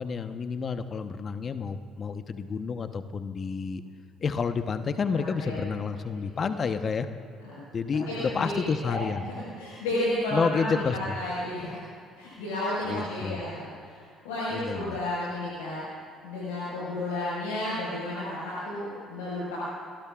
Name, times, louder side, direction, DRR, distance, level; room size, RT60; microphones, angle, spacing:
voice 1, 0.0-3.8 4.2-7.1 7.7-9.2 10.3-11.0 12.9-13.4 14.5-15.0, left 5 dB, 45° left, 9 dB, 1.0 m, -30 dB
voice 2, 5.1-5.6 6.3-6.5 7.4-7.6 8.1-11.8 12.2-14.0 14.2-15.8 16.2-19.6, left 1 dB, 80° left, -8 dB, 5.2 m, -32 dB
29.0 x 19.0 x 2.5 m, 2.3 s
hypercardioid pair, 55°, 0 cm